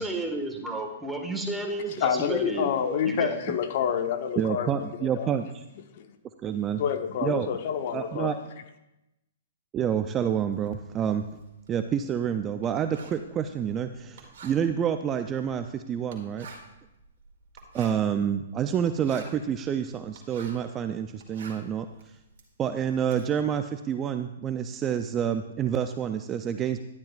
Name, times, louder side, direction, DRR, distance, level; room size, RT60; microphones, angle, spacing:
voice 1, 0.0-3.4, right 2 dB, 5° right, 1 dB, 1.6 m, -32 dB
voice 2, 2.0-5.3 6.0-6.1 6.8-8.3, left 8 dB, 50° left, 8 dB, 0.9 m, -28 dB
voice 3, 4.4-5.6 6.4-6.8 7.2-7.5 7.9-8.4 9.7-11.3 11.7-16.5 17.7-21.9 22.6-26.8, right 8 dB, 25° right, 9 dB, 0.4 m, -28 dB
Writing, 10.5-20.7 21.1-23.3, right 4 dB, 60° right, 2.3 m, -49 dB
12.0 x 10.5 x 2.4 m, 0.94 s
hypercardioid pair, 125°, 0 cm